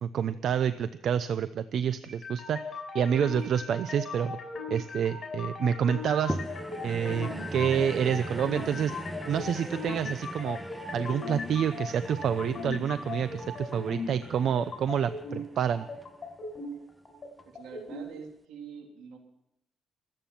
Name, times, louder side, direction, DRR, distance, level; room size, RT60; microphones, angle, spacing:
voice 1, 0.0-2.6 2.9-4.4 4.7-6.4 6.8-8.9 9.2-10.6 10.9-15.9, right 8 dB, 65° right, 13 dB, 0.6 m, -28 dB
sound 1, 2.1-18.0, left 3 dB, 40° left, 6.4 m, -39 dB
sound 2, 6.3-16.8 17.4-17.5, right 1 dB, 10° right, 1.0 m, -41 dB
voice 2, 17.4-19.2, right 6 dB, 90° right, 3 dB, 3.4 m, -45 dB
25.5 x 9.0 x 5.7 m, 0.83 s
cardioid pair, 90°, 0 cm